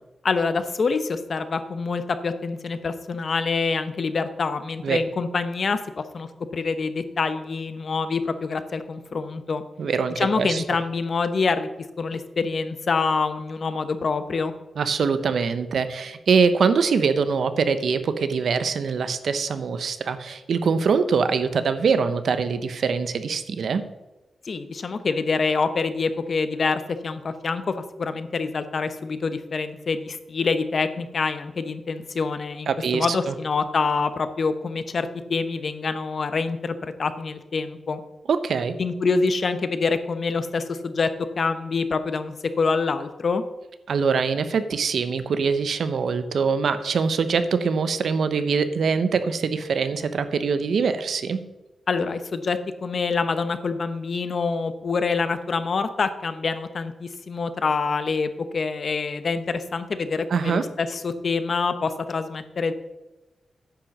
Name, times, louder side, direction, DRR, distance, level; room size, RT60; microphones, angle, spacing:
voice 1, 0.2-5.8 6.1-9.6 10.2-11.7 12.0-14.5 24.5-38.0 38.8-41.1 41.4-43.4 51.9-62.7, left 4 dB, 50° left, 11 dB, 0.8 m, -26 dB
voice 2, 9.8-10.6 14.8-23.8 32.7-33.3 38.3-38.7 43.9-51.4 60.3-60.6, right 5 dB, 75° right, 11 dB, 0.8 m, -23 dB
9.8 x 6.1 x 6.6 m, 1.0 s
wide cardioid pair, 115°, 0 cm